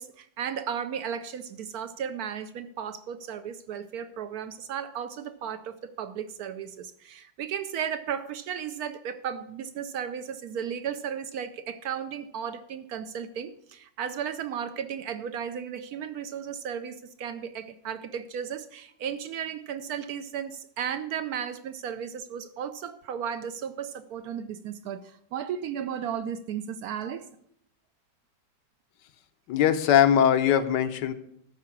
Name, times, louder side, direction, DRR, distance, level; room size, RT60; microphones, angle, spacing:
voice 1, 0.0-27.3, right 8 dB, 70° right, 12 dB, 0.9 m, -35 dB
voice 2, 29.5-31.1, left 9 dB, 75° left, 10 dB, 1.3 m, -21 dB
12.5 x 4.7 x 7.1 m, 0.71 s
omnidirectional pair, 2.0 m